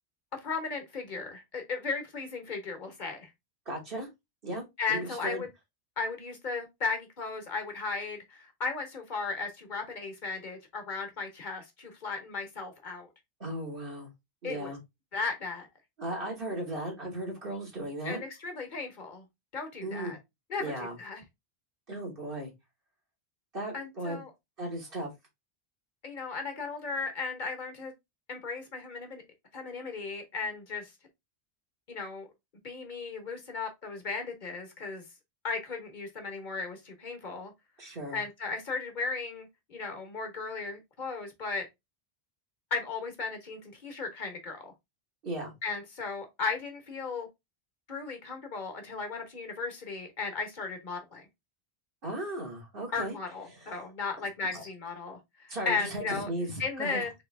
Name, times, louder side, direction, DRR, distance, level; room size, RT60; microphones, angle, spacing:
voice 1, 0.3-3.3 4.8-5.5 6.0-13.1 14.4-14.7 15.1-15.7 18.0-19.2 19.5-20.2 20.5-21.2 23.7-24.3 26.0-27.9 28.3-29.2 29.5-30.9 31.9-32.3 32.6-35.0 35.4-37.5 38.1-41.7 42.7-44.7 45.6-47.3 47.9-51.3 52.9-56.3 56.6-57.1, left 4 dB, 50° left, 1.3 m, -36 dB
voice 2, 3.7-4.1 4.4-5.4 13.4-14.1 14.4-14.8 16.0-18.2 19.8-20.1 20.6-21.0 21.9-22.5 23.5-24.2 24.6-25.1 37.8-38.2 45.2-45.5 52.0-53.2 53.6-53.7 54.5-54.7 55.5-57.0, right 1 dB, 60° right, 1.7 m, -36 dB
3.9 x 3.0 x 3.4 m
omnidirectional pair, 1.0 m